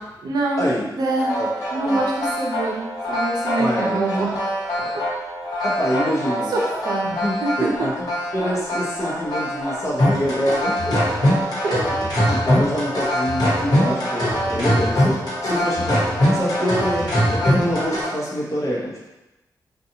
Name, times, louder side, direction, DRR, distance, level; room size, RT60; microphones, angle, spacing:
voice 1, 0.2-0.7 0.9-1.3 1.7-4.4 4.8-4.9 6.5-7.1 11.6-11.8, right 2 dB, 65° right, -2 dB, 0.5 m, -24 dB
sound 1, 1.1-18.1, equal, 60° left, 1.0 m, -23 dB
voice 2, 3.6-4.3 5.6-6.6 7.0-8.1 8.3-11.0 11.9-16.0 16.3-19.1, equal, 45° left, -5 dB, 0.7 m, -26 dB
2.6 x 2.3 x 2.7 m, 1.0 s
wide cardioid pair, 140°, 7 cm